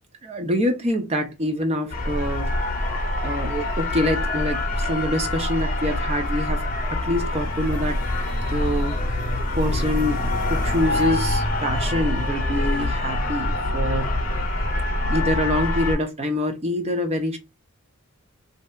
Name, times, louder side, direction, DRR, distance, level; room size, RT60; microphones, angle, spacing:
voice 1, 0.2-2.5 3.2-6.6 6.9-8.0 8.5-14.1 15.1-17.4, left 1 dB, 30° right, 0.5 m, -26 dB
sound 1, 1.9-15.9, left 1 dB, 40° left, 0.8 m, -25 dB
3.2 x 2.7 x 2.2 m
head